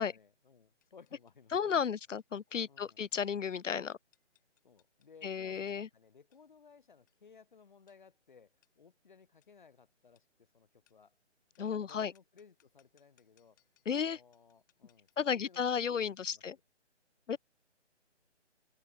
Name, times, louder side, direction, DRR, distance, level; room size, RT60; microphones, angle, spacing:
voice 1, 0.0-1.8 2.7-3.0 4.6-11.1 11.6-13.6 13.9-16.4 17.3-17.4, left 5 dB, 40° left, 6.5 m, -60 dB
sound 1, 0.8-16.3, left 15 dB, 15° left, 6.1 m, -77 dB
voice 2, 1.5-4.0 5.2-5.9 11.6-12.1 13.9-14.2 15.2-16.6 17.3-17.4, left 7 dB, 90° left, 0.8 m, -33 dB
open air
hypercardioid pair, 175°, 36 cm